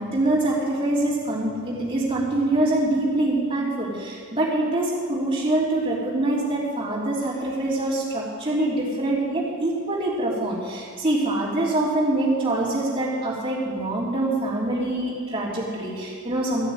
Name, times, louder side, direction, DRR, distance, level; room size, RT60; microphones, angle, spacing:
voice 1, 0.0-16.7, right 1 dB, 25° right, -7 dB, 3.4 m, -24 dB
14.0 x 6.7 x 9.1 m, 2.1 s
head